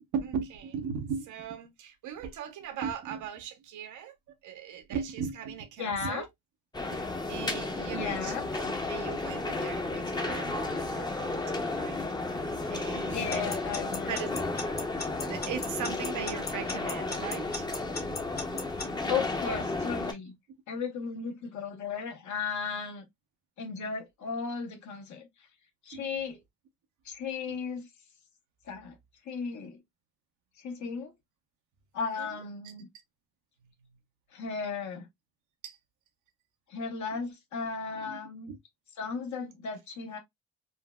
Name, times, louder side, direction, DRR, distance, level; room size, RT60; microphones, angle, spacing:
voice 1, 0.1-4.1 4.4-6.3 6.8-12.0 12.3-13.4 14.1-14.3 15.3-17.7 18.1-18.2 18.5-18.6 25.9-26.0 32.2-32.3 35.6-35.8 38.0-38.2 38.5-38.6, right 7 dB, 75° right, 0.8 m, -38 dB
voice 2, 5.8-6.3 7.9-8.5 13.0-14.2 19.1-20.4 20.7-23.1 23.6-25.3 25.8-26.4 27.0-27.9 28.7-29.0 29.2-29.8 30.6-31.1 31.9-32.9 34.3-35.1 36.7-38.5 39.0-40.2, left 5 dB, 70° left, 1.2 m, -35 dB
sound 1, 6.7-20.1, left 2 dB, 15° left, 0.6 m, -33 dB
Alarm / Clock, 13.3-18.9, left 4 dB, 30° left, 0.9 m, -36 dB
3.9 x 2.0 x 2.2 m
cardioid pair, 90°, 30 cm